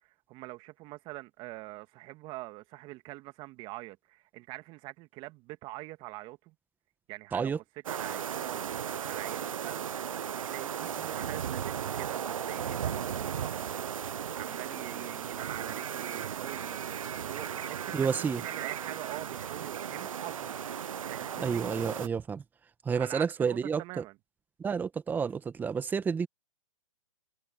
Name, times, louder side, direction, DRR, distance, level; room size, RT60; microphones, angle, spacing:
voice 1, 0.0-6.5 7.1-13.8 14.3-20.6 21.1-21.7 22.9-24.1, right 20 dB, 30° right, 2.2 m, -44 dB
sound 1, 7.9-22.1, right 8 dB, 70° right, 0.7 m, -36 dB
voice 2, 17.9-18.4 21.4-22.4 22.8-24.0 24.6-26.3, right 6 dB, 10° right, 1.5 m, -30 dB
open air
hypercardioid pair, 135°, 18 cm